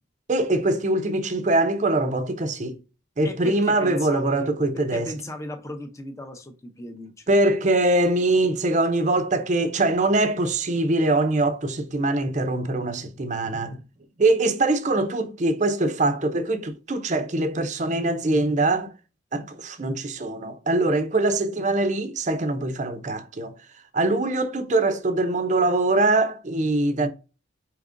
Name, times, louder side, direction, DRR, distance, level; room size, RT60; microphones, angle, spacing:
voice 1, 0.3-2.8 3.2-5.1 7.3-13.8 14.2-18.9 19.3-23.5 23.9-27.1, right 2 dB, 35° right, 0.5 m, -23 dB
voice 2, 3.2-7.5, left 1 dB, 15° left, 0.6 m, -37 dB
4.9 x 2.9 x 2.5 m
head